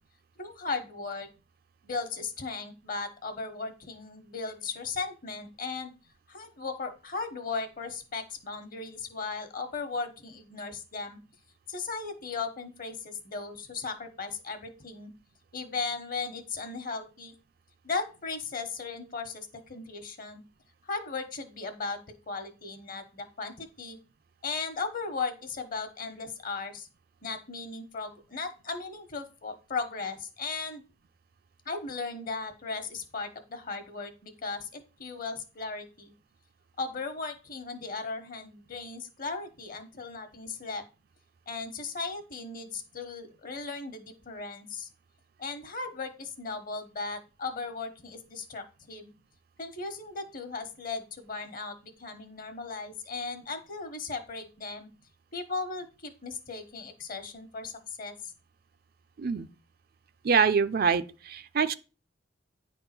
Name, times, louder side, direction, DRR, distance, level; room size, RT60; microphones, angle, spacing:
voice 1, 0.4-1.3 1.8-5.9 6.3-11.2 11.7-15.1 15.5-17.3 17.8-20.4 20.8-24.0 24.4-26.9 27.2-30.8 31.6-36.1 36.8-40.8 41.5-44.9 45.4-49.1 49.6-54.9 55.3-58.3, left 4 dB, 50° left, 1.2 m, -37 dB
voice 2, 60.2-61.8, right 6 dB, 50° right, 0.5 m, -25 dB
9.3 x 3.6 x 5.9 m
head